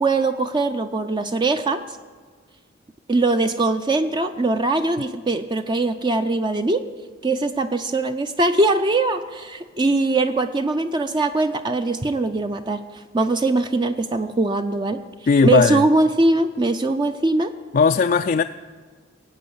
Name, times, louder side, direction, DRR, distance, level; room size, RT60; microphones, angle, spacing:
voice 1, 0.0-2.0 3.1-6.8 7.2-15.0 15.4-17.5, right 2 dB, 25° right, 8 dB, 0.4 m, -21 dB
voice 2, 15.3-15.8 17.7-18.4, left 5 dB, 40° left, 7 dB, 0.3 m, -17 dB
16.5 x 8.5 x 8.0 m, 1.5 s
head